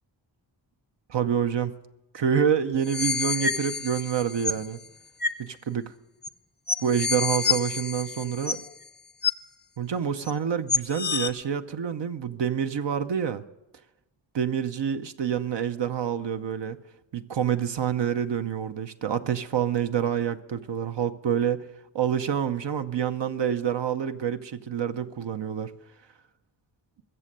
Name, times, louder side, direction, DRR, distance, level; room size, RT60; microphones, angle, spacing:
voice 1, 1.1-1.8 2.1-4.8 5.4-5.9 6.8-8.6 9.8-13.4 14.3-16.8 17.1-21.6 21.9-25.7, right 8 dB, 70° right, 0.7 m, -27 dB
sound 1, 2.8-4.7 5.2-5.4 6.2-6.3 6.7-8.8 9.2-9.3 10.2-10.3 10.7-11.3, left 5 dB, 25° left, 0.5 m, -28 dB
21.5 x 7.5 x 6.6 m
wide cardioid pair, 100°, 46 cm